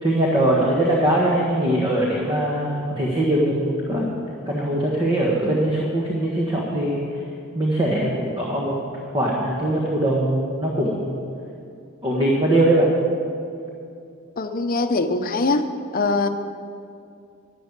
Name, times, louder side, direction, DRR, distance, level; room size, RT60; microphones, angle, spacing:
voice 1, 0.0-4.1 4.5-7.0 7.5-8.8 9.1-11.2 12.0-12.9, right 1 dB, 25° right, -4 dB, 1.5 m, -21 dB
voice 2, 14.4-15.7 15.9-16.3, left 3 dB, 45° left, 8 dB, 0.8 m, -22 dB
11.5 x 10.0 x 6.7 m, 2.5 s
head